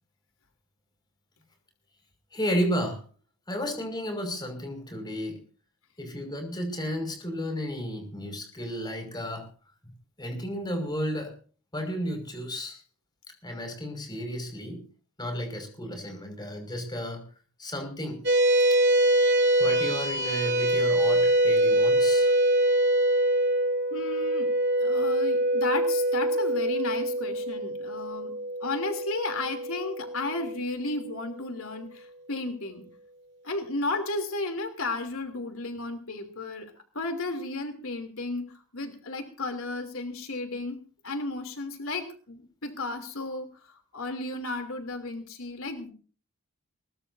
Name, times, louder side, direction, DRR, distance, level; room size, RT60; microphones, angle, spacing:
voice 1, 2.3-3.0 3.5-5.4 6.0-9.5 9.8-11.4 11.7-12.8 13.4-14.8 15.2-17.3 17.6-18.2 19.6-22.3, equal, 20° left, 4 dB, 5.6 m, -33 dB
sound 1, 18.3-30.9, right 1 dB, 50° right, 3.8 m, -24 dB
voice 2, 23.9-24.5 24.8-28.3 28.6-32.8 33.4-40.8 41.0-45.9, left 2 dB, 70° left, 5 dB, 3.1 m, -34 dB
22.0 x 19.5 x 2.7 m, 0.39 s
head